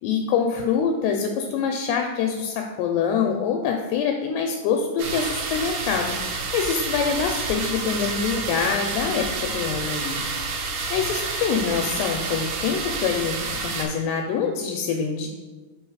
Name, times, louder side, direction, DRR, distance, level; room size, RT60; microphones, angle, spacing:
voice 1, 0.0-10.2 10.6-15.3, left 6 dB, 85° left, 3 dB, 2.5 m, -25 dB
sound 1, 5.0-13.9, right 3 dB, 80° right, 2.8 m, -29 dB
6.2 x 3.4 x 4.7 m, 1.3 s
omnidirectional pair, 4.9 m